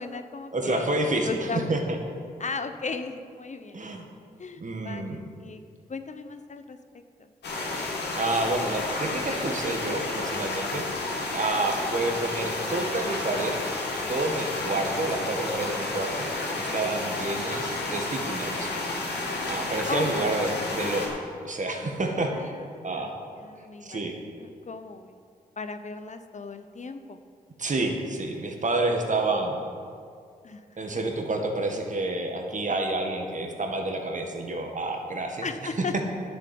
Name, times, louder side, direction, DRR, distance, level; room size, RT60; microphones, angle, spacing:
voice 1, 0.0-0.9 1.2-1.7 2.4-3.8 4.4-5.6 5.9-6.8 19.9-20.4 22.7-23.1 23.4-25.2 25.6-27.2 30.4-30.6 35.4-35.9, left 4 dB, 45° left, 8 dB, 0.9 m, -36 dB
voice 2, 0.5-2.0 3.7-4.0 4.6-5.2 8.2-10.9 11.3-13.6 14.1-18.7 19.4-21.2 21.4-22.6 22.8-23.2 23.8-24.2 27.6-29.6 30.8-36.0, right 2 dB, 45° right, 3 dB, 1.9 m, -29 dB
sound 1, 7.4-21.1, left 2 dB, 80° left, 2.4 m, -31 dB
10.0 x 7.3 x 7.9 m, 2.3 s
supercardioid pair, 45°, 17 cm